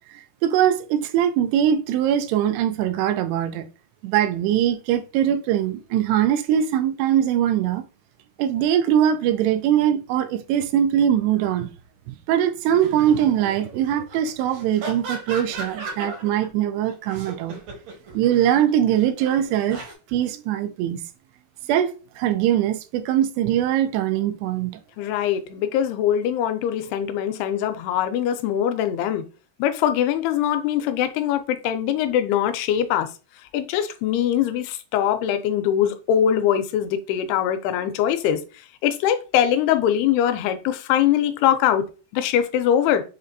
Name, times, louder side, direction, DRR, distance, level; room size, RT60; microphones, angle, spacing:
voice 1, 0.1-3.7 4.0-7.8 8.4-11.7 12.1-17.6 18.1-19.8 20.1-21.0 21.7-24.7, right 10 dB, 90° right, 2.6 m, -22 dB
sound 1, 12.7-16.5 16.9-19.9, right 3 dB, 70° right, 1.7 m, -37 dB
voice 2, 25.0-29.2 29.6-33.1 33.5-38.4 38.8-41.8 42.1-43.0, left 10 dB, 85° left, 2.5 m, -22 dB
6.4 x 2.5 x 2.6 m
omnidirectional pair, 4.5 m